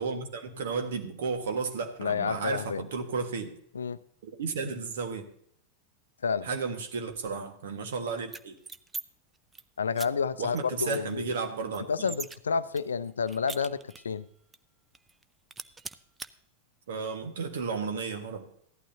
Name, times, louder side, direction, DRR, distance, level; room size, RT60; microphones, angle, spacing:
voice 1, 0.0-3.5 4.2-5.2 6.4-8.5 10.4-12.1 16.9-18.4, right 5 dB, 60° right, 5 dB, 1.6 m, -33 dB
voice 2, 2.0-2.8 3.7-4.0 6.2-6.5 9.8-11.3 11.9-14.2, left 6 dB, 70° left, 16 dB, 0.5 m, -30 dB
sound 1, 8.3-9.0 9.4-9.6 10.0-10.1 10.5-10.6 10.9-12.4 12.8-14.2 14.5-14.6 14.9-15.2 15.5-16.3, right 4 dB, 15° right, 0.5 m, -41 dB
15.5 x 11.5 x 2.8 m, 0.67 s
figure-of-eight pair, 90°, 0 cm